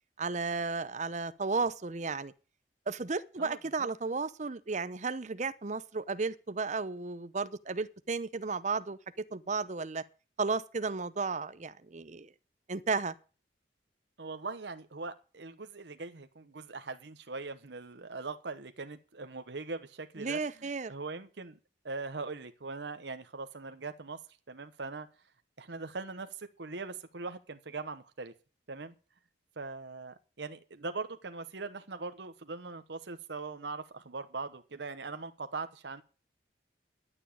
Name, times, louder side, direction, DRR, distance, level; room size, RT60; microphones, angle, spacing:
voice 1, 0.2-2.3 2.9-10.0 10.4-12.3 12.7-13.1 20.2-20.9, right 4 dB, 40° right, 0.7 m, -34 dB
voice 2, 3.4-3.9 14.2-21.6 21.8-24.2 24.5-25.1 25.6-28.3 28.7-28.9 29.6-36.0, right 3 dB, 70° right, 1.0 m, -41 dB
11.0 x 7.1 x 8.7 m
head